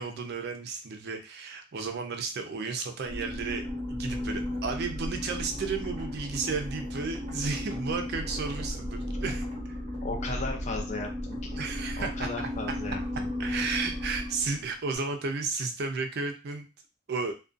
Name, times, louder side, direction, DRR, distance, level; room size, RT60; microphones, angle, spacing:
voice 1, 0.0-3.6 3.9-9.8 11.6-12.5 13.4-16.7 17.1-17.3, right 4 dB, 55° right, 5 dB, 0.4 m, -33 dB
sound 1, 3.0-14.7, left 1 dB, 40° right, 0.8 m, -35 dB
voice 2, 10.0-11.6 12.0-13.5, left 3 dB, 35° left, 1 dB, 0.5 m, -36 dB
2.5 x 2.2 x 2.5 m, 0.30 s
head